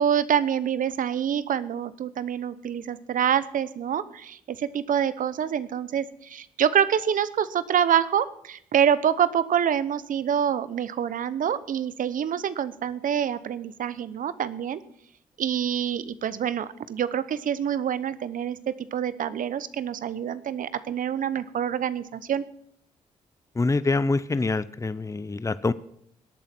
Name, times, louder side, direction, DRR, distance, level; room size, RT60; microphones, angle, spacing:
voice 1, 0.0-14.8 15.4-22.4, right 9 dB, 65° right, 15 dB, 0.9 m, -26 dB
voice 2, 23.6-25.7, left 3 dB, 20° left, 16 dB, 0.7 m, -25 dB
18.5 x 8.8 x 6.1 m, 0.69 s
supercardioid pair, 50°, 15 cm